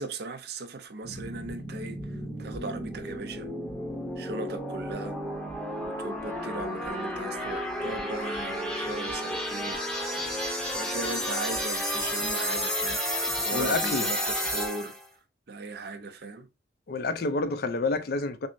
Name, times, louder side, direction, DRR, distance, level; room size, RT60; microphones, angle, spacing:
voice 1, 0.0-3.5 4.2-5.2 5.8-9.8 10.7-13.0 13.4-15.0 15.5-16.5, right 3 dB, 60° right, 0.6 m, -38 dB
sound 1, 1.0-15.0, equal, 5° left, 0.8 m, -32 dB
voice 2, 13.5-14.1 16.9-18.5, left 3 dB, 55° left, 0.4 m, -28 dB
6.1 x 2.0 x 2.5 m
head